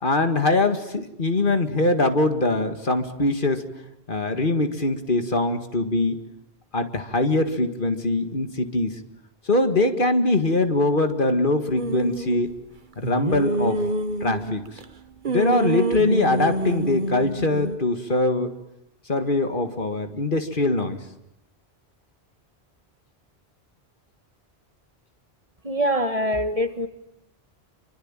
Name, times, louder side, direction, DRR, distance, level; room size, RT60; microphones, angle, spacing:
voice 1, 0.0-3.6 4.1-6.2 6.7-9.0 9.5-12.5 13.0-13.8 14.2-14.8 15.3-18.5 19.1-21.0, left 2 dB, 55° left, 8 dB, 2.1 m, -22 dB
sound 1, 11.8-12.4 13.0-14.8 15.2-17.8, right 2 dB, 50° right, 1.4 m, -26 dB
voice 2, 25.6-26.9, equal, 35° right, 8 dB, 1.8 m, -24 dB
26.5 x 25.0 x 9.0 m, 0.83 s
omnidirectional pair, 1.0 m